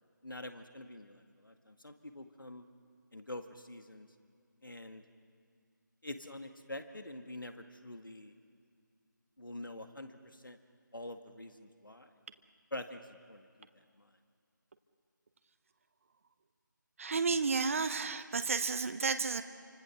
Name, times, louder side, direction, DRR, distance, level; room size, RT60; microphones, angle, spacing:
voice 1, 0.2-2.6 3.1-4.1 4.6-5.0 6.0-8.3 9.4-10.6 10.9-12.1 12.7-14.1, left 1 dB, 85° left, 7 dB, 1.9 m, -46 dB
voice 2, 17.0-19.4, right 4 dB, 40° right, 10 dB, 0.9 m, -32 dB
28.5 x 25.5 x 6.4 m, 2.3 s
figure-of-eight pair, 160°, 11 cm